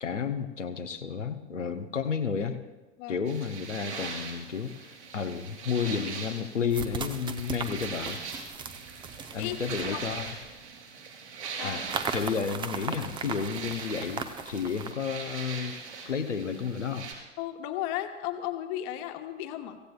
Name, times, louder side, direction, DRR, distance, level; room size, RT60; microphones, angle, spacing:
voice 1, 0.0-2.6 3.1-8.2 9.3-10.3 11.6-11.8 12.1-15.7 16.1-17.1, left 6 dB, 80° left, 6 dB, 0.9 m, -32 dB
sound 1, 3.3-17.1, right 5 dB, 70° right, 3.9 m, -41 dB
sound 2, 5.3-5.4 6.7-10.6 11.9-14.9, right 5 dB, 15° right, 0.7 m, -37 dB
voice 2, 9.1-9.6 9.8-10.1 11.6-11.8 17.4-19.8, left 13 dB, 40° left, 6 dB, 1.3 m, -35 dB
24.0 x 16.0 x 2.3 m, 1.2 s
figure-of-eight pair, 95°, 36 cm